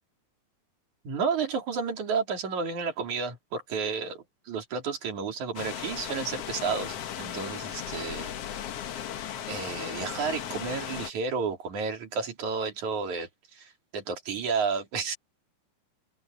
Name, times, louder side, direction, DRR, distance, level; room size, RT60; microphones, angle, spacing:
voice 1, 1.0-8.3 9.5-15.2, right 5 dB, 55° right, 4.6 m, -31 dB
sound 1, 5.6-11.1, left 10 dB, 60° left, 1.7 m, -36 dB
open air
omnidirectional pair, 4.0 m